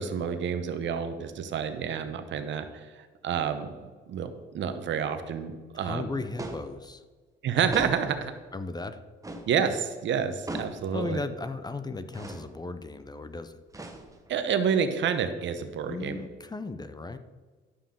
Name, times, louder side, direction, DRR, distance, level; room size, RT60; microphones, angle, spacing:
voice 1, 0.0-3.7 4.1-6.1 7.4-8.3 9.5-11.2 14.3-16.2, right 7 dB, 70° right, 9 dB, 1.0 m, -29 dB
voice 2, 5.7-7.0 8.5-9.0 10.9-13.6 15.9-17.2, left 3 dB, 20° left, 11 dB, 0.6 m, -36 dB
sound 1, 6.4-6.8 7.7-8.2 9.2-9.5 10.5-10.9 12.1-12.5 13.7-14.3, right 1 dB, 15° right, 1.2 m, -38 dB
11.5 x 7.0 x 3.8 m, 1.4 s
cardioid pair, 90°, 20 cm